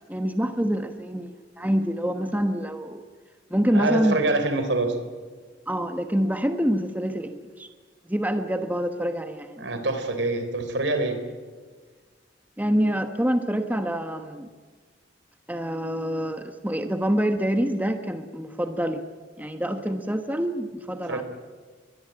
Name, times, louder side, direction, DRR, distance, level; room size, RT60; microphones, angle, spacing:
voice 1, 0.1-3.0 3.5-4.2 5.7-7.7 8.1-9.6 12.6-14.5 15.5-19.0 19.4-21.2, equal, 10° right, 7 dB, 1.2 m, -26 dB
voice 2, 3.7-5.0 9.6-11.2 21.1-21.2, right 2 dB, 75° right, 8 dB, 3.9 m, -25 dB
22.5 x 21.5 x 8.6 m, 1.5 s
head